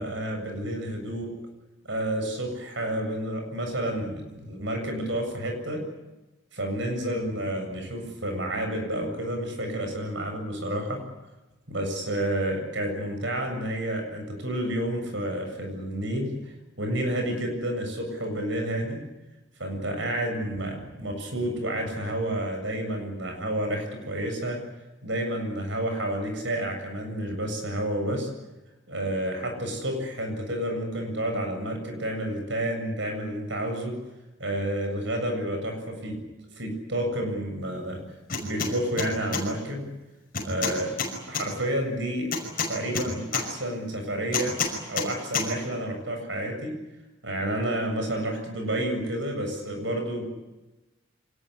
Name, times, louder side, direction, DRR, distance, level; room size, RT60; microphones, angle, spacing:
voice 1, 0.0-1.3 1.8-5.9 6.5-11.0 11.7-19.0 19.6-24.6 25.0-28.3 28.9-34.0 34.4-36.2 36.6-38.0 38.4-39.9 40.4-40.9 41.3-42.3 42.7-44.6 44.9-46.8 47.2-50.3, right 1 dB, 65° right, 4 dB, 7.6 m, -30 dB
sound 1, 38.3-38.7 39.0-39.4 40.3-41.4 42.3-43.4 44.3-45.1 45.3-45.5, left 5 dB, 45° left, 5.7 m, -28 dB
25.5 x 19.5 x 10.0 m, 1.1 s
head